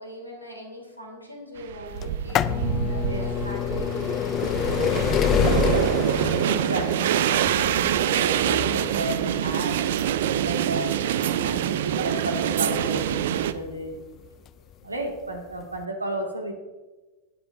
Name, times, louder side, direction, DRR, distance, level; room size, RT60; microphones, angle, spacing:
voice 1, 0.0-6.4, equal, 85° left, 0 dB, 3.1 m, -41 dB
sound 1, 1.6-13.5, right 10 dB, 55° right, 0.6 m, -25 dB
sound 2, 2.0-13.7 14.5-14.6 15.5-15.6 15.8-15.9, left 10 dB, 30° left, 0.4 m, -28 dB
voice 2, 2.4-3.3 6.4-10.0 10.4-13.9 14.8-16.5, right 1 dB, 80° right, 2 dB, 2.2 m, -33 dB
sound 3, 7.0-14.0, right 2 dB, 35° right, 4.2 m, -50 dB
19.5 x 10.0 x 2.6 m, 1.2 s
figure-of-eight pair, 90°, 0 cm